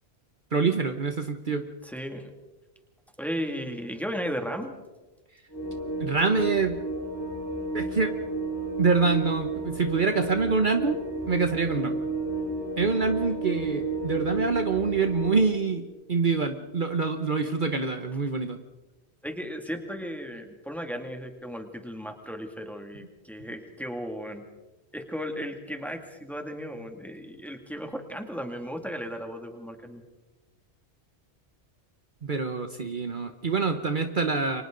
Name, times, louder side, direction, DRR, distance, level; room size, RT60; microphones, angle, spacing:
voice 1, 0.5-1.7 6.0-6.8 7.7-8.1 8.8-12.0 12.8-18.6 32.2-34.6, right 4 dB, 50° right, 7 dB, 1.2 m, -26 dB
voice 2, 1.8-2.3 3.2-4.7 19.2-24.4 24.9-30.0, equal, ahead, 4 dB, 2.3 m, -35 dB
sound 1, 5.5-15.5, right 2 dB, 20° left, 4.6 m, -32 dB
29.0 x 24.5 x 3.9 m, 1.1 s
omnidirectional pair, 1.1 m